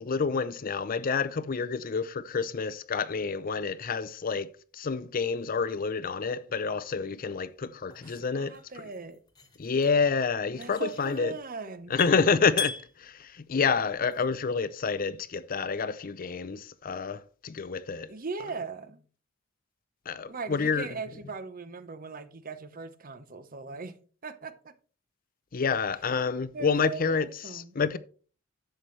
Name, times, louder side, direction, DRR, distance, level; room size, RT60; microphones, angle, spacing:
voice 1, 0.0-8.6 9.6-11.3 11.9-12.7 13.0-18.1 20.1-20.9 25.5-28.0, left 5 dB, 45° left, 0.5 m, -28 dB
sound 1, 7.0-14.5, left 5 dB, 20° left, 1.4 m, -41 dB
voice 2, 8.0-9.2 10.5-11.9 18.1-19.0 20.3-24.0 24.2-24.7 26.5-27.8, right 4 dB, 45° right, 0.8 m, -39 dB
11.0 x 7.7 x 3.2 m
head